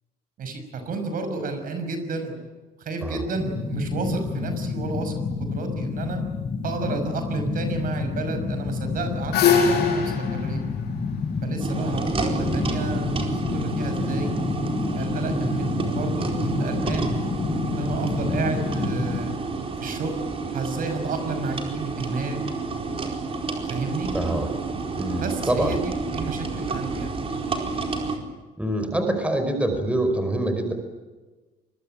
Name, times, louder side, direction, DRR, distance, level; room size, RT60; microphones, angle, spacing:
voice 1, 0.4-2.5 2.8-6.2 6.6-10.6 11.4-13.2 13.5-14.3 14.9-17.2 17.7-19.4 19.8-20.2 20.5-22.9 23.7-24.2 25.2-27.1, right 3 dB, 55° right, 7 dB, 5.9 m, -31 dB
sound 1, 3.4-19.2, left 4 dB, 30° left, 1.9 m, -29 dB
sound 2, 8.8-12.0, left 6 dB, 75° left, 6.5 m, -23 dB
sound 3, 11.6-28.2, right 4 dB, 35° right, 4.6 m, -30 dB
voice 2, 24.1-24.5 25.0-25.7 28.6-30.7, right 1 dB, 5° right, 6 dB, 5.1 m, -25 dB
25.0 x 22.0 x 9.0 m, 1.2 s
cardioid pair, 110°, 17 cm